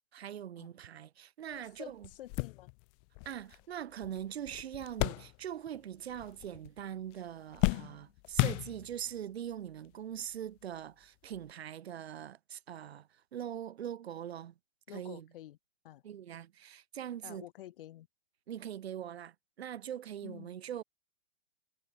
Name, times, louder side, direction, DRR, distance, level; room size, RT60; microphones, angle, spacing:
voice 1, 0.1-2.1 3.3-14.6 14.9-15.3 16.0-17.5 18.5-20.8, right 10 dB, 70° right, 1.8 m, -42 dB
voice 2, 1.5-2.7 14.9-15.6 15.8-16.0 17.2-18.1 20.2-20.5, left 13 dB, 55° left, 3.9 m, -49 dB
sound 1, 1.5-1.6 2.0-5.8 6.1-6.8 7.1-9.2 9.9-10.0 11.3-11.5, left 37 dB, 30° left, 0.9 m, -35 dB
hypercardioid pair, 135°, 33 cm